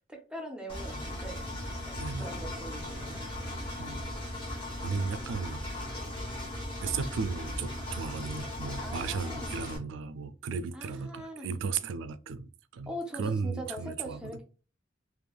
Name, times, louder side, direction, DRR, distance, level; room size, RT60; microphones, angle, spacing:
voice 1, 0.1-1.4 1.8-3.9 8.8-9.6 10.7-11.5 12.9-14.4, equal, 5° right, 0.6 m, -42 dB
Engine, 0.7-9.8, left 1 dB, 25° left, 0.9 m, -37 dB
voice 2, 4.8-5.6 6.8-14.4, right 5 dB, 70° right, 0.3 m, -35 dB
3.1 x 2.4 x 2.3 m
head